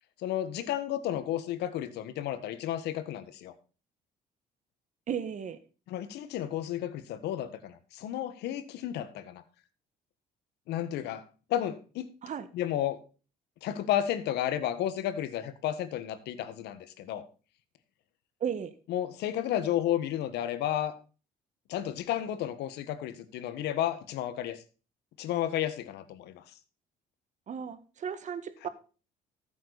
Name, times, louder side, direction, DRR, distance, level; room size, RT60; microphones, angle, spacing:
voice 1, 0.2-3.5 5.9-9.4 10.7-12.1 12.5-13.0 13.6-17.2 18.9-20.9 21.7-24.6 25.2-26.4, left 11 dB, 80° left, 12 dB, 1.5 m, -32 dB
voice 2, 5.1-5.6 12.2-12.5 18.4-18.7 27.5-28.7, right 8 dB, 45° right, 12 dB, 1.5 m, -35 dB
14.0 x 7.8 x 4.1 m, 0.35 s
cardioid pair, 110°, 17 cm